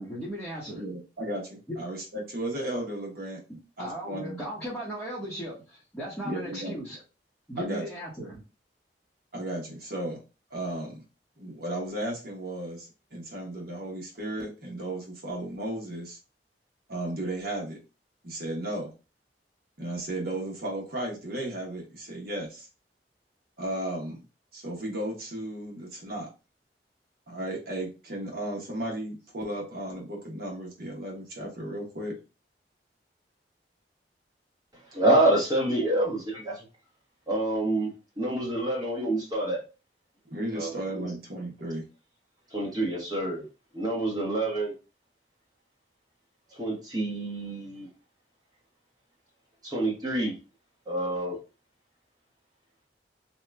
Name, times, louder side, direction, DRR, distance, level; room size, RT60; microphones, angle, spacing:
voice 1, 0.0-0.8 1.7-1.8 3.5-7.0 7.5-8.4, equal, 5° left, -9 dB, 1.0 m, -37 dB
voice 2, 0.8-3.4 3.8-4.4 6.2-6.8 7.6-7.9 9.3-10.2 10.5-11.0 11.4-16.2 16.9-17.8 18.2-18.9 19.8-22.7 23.6-24.2 24.5-26.3 27.3-32.1 40.3-41.8, right 1 dB, 60° right, -1 dB, 1.1 m, -34 dB
voice 3, 34.9-36.6 37.3-39.6 40.5-41.1 42.5-43.4 43.7-44.7 46.5-47.9 49.6-50.3 50.9-51.4, right 1 dB, 25° right, -2 dB, 1.1 m, -27 dB
2.8 x 2.3 x 3.3 m, 0.31 s
head